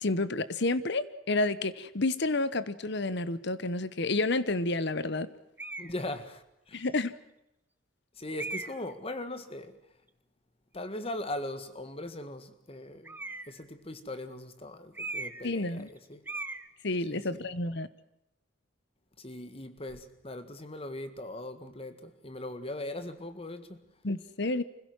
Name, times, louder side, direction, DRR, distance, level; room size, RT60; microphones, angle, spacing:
voice 1, 0.0-5.3 6.7-7.1 15.4-15.9 16.8-17.9 24.0-24.6, left 2 dB, 55° left, 1.0 m, -30 dB
sound 1, 5.6-6.0 6.8-6.9 8.4-8.9 13.0-13.6 14.9-15.5 15.8-16.0 16.3-16.7, right 3 dB, 10° right, 1.0 m, -38 dB
voice 2, 5.8-6.8 8.2-9.8 10.7-13.2 13.5-16.2 17.1-17.5 19.2-23.8, left 1 dB, 30° left, 1.8 m, -40 dB
25.5 x 16.5 x 9.5 m
head